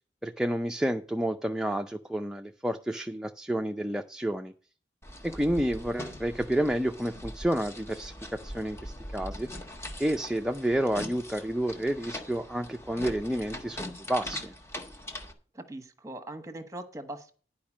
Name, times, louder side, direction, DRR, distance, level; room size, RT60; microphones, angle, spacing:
voice 1, 0.2-4.5 5.2-9.5 10.0-14.5, right 1 dB, 5° right, 4 dB, 0.5 m, -30 dB
sound 1, 5.0-15.3, left 1 dB, 15° left, 1.4 m, -42 dB
voice 2, 15.5-17.3, right 1 dB, 20° right, 8 dB, 1.3 m, -41 dB
10.5 x 5.1 x 7.2 m, 0.39 s
head